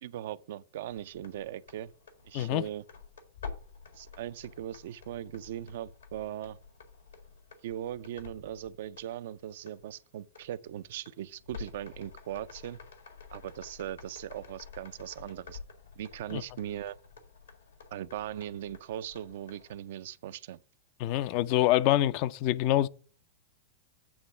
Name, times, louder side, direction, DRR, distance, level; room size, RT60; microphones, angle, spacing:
voice 1, 0.0-1.9 2.2-2.8 3.9-6.6 7.6-12.8 13.3-15.6 16.0-17.0 17.9-20.6, right 11 dB, 60° right, 0.4 m, -39 dB
sound 1, 0.9-19.8, left 5 dB, 80° left, 1.8 m, -49 dB
voice 2, 2.3-2.7 16.3-16.4 21.0-22.9, left 14 dB, 50° left, 0.4 m, -26 dB
8.6 x 3.7 x 6.9 m
hypercardioid pair, 100°, 0 cm